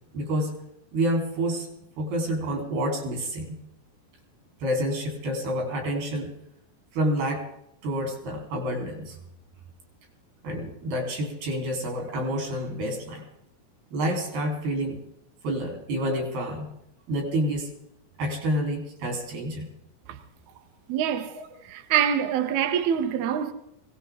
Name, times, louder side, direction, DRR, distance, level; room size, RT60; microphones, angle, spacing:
voice 1, 0.1-0.5 0.9-1.7 2.0-3.6 4.6-6.3 6.9-7.4 7.8-9.2 10.4-13.2 13.9-15.0 15.4-16.7 17.1-17.7 18.2-19.7, equal, 85° right, 5.8 m, -28 dB
voice 2, 20.9-23.5, right 9 dB, 65° right, 2.1 m, -25 dB
21.5 x 18.0 x 3.7 m
omnidirectional pair, 4.3 m